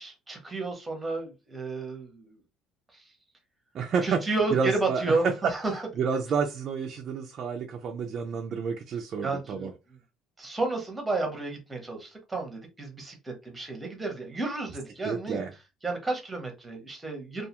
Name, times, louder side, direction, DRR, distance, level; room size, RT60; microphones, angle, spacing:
voice 1, 0.0-2.4 2.9-3.0 4.0-5.9 9.2-9.7 10.4-15.4 15.8-17.5, right 3 dB, 10° right, 3 dB, 0.8 m, -32 dB
voice 2, 3.7-4.2 4.5-5.5 6.0-9.7 15.0-15.5, right 6 dB, 40° right, 3 dB, 0.4 m, -29 dB
2.3 x 2.2 x 2.8 m, 0.26 s
cardioid pair, 150°, 0 cm